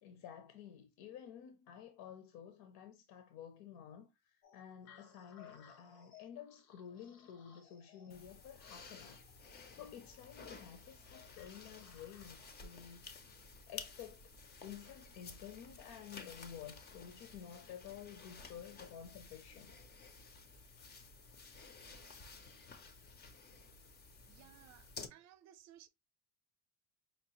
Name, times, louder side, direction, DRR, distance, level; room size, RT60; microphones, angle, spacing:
voice 1, 0.0-9.2 9.5-13.4 13.7-14.3 14.6-19.7, left 9 dB, 55° left, 0.7 m, -52 dB
sound 1, 4.4-12.6, left 8 dB, 80° left, 1.1 m, -63 dB
sound 2, 8.1-25.1, left 4 dB, 20° left, 0.5 m, -54 dB
voice 2, 24.3-25.9, right 11 dB, 35° right, 0.6 m, -60 dB
5.2 x 2.0 x 2.8 m
supercardioid pair, 125°, 47 cm